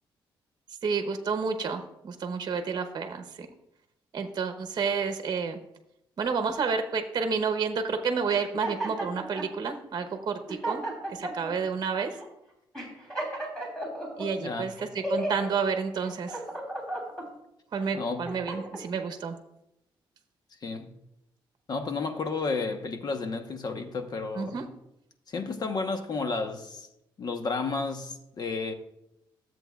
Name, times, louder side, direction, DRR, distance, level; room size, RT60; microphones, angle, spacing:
voice 1, 0.8-3.5 4.1-5.6 6.2-10.8 11.1-12.1 14.2-14.7 15.1-16.4 17.7-19.3 24.3-24.6, right 5 dB, 50° right, 0.9 m, -30 dB
sound 1, 8.3-9.5 10.1-10.2 10.5-11.5 12.1-12.3 12.7-14.3 14.8-15.5 16.0-17.3 17.8-18.8, right 1 dB, 5° left, 3.2 m, -34 dB
voice 2, 14.4-14.7 17.9-18.3 20.6-20.9 21.7-24.6 25.3-26.9 27.2-28.7, left 4 dB, 50° left, 1.0 m, -32 dB
13.0 x 7.7 x 2.4 m
cardioid pair, 100°, 9 cm